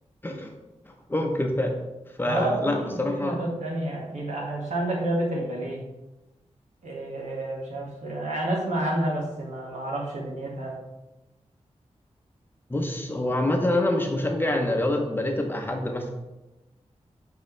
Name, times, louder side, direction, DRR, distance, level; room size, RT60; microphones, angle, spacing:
voice 1, 1.1-1.8 2.2-3.4 12.7-16.1, left 1 dB, 15° left, 2 dB, 0.8 m, -26 dB
voice 2, 2.3-5.8 6.8-10.8, right 1 dB, 80° right, -3 dB, 1.9 m, -29 dB
7.8 x 4.7 x 3.3 m, 1.0 s
wide cardioid pair, 135°, 12 cm